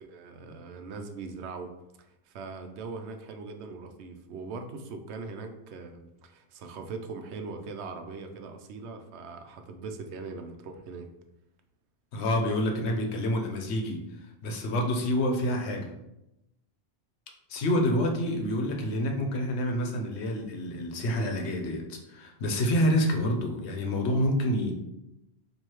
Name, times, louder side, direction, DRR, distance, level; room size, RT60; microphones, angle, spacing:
voice 1, 0.0-1.7 2.0-11.1, right 4 dB, 85° right, 6 dB, 0.9 m, -41 dB
voice 2, 12.1-15.9 17.5-24.7, equal, 90° left, 3 dB, 1.0 m, -28 dB
4.6 x 2.7 x 2.9 m, 0.87 s
omnidirectional pair, 1.1 m